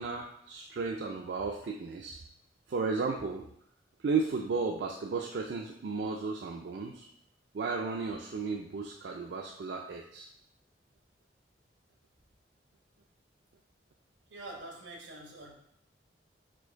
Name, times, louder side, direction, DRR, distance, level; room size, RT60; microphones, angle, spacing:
voice 1, 0.0-2.2 2.7-3.4 4.0-7.1 7.5-10.3, right 4 dB, 65° right, 1 dB, 0.4 m, -34 dB
voice 2, 14.3-15.5, right 2 dB, 85° right, 0 dB, 1.0 m, -45 dB
4.5 x 2.5 x 4.5 m, 0.71 s
head